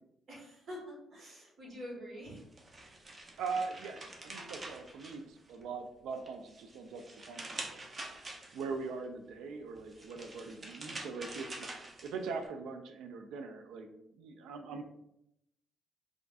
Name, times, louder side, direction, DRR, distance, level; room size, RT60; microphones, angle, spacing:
voice 1, 0.3-2.4, equal, 65° right, -4 dB, 1.3 m, -46 dB
sound 1, 2.4-5.7 6.1-8.9 9.8-12.5, right 2 dB, 30° right, 0.5 m, -46 dB
voice 2, 3.4-7.8 8.5-11.7 12.0-13.9 14.1-14.8, right 4 dB, 85° right, 7 dB, 0.3 m, -41 dB
3.4 x 2.4 x 2.3 m, 0.80 s
cardioid pair, 90°, 0 cm